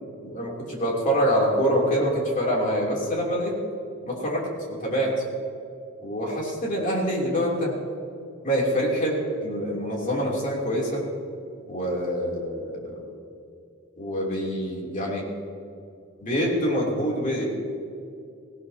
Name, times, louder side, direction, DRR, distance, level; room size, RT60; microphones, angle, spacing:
voice 1, 0.2-3.6 4.0-5.1 6.0-7.7 8.4-11.1 11.7-13.1 14.0-15.3 16.2-17.4, equal, 35° left, -3 dB, 3.1 m, -25 dB
18.0 x 17.5 x 2.8 m, 2.6 s
head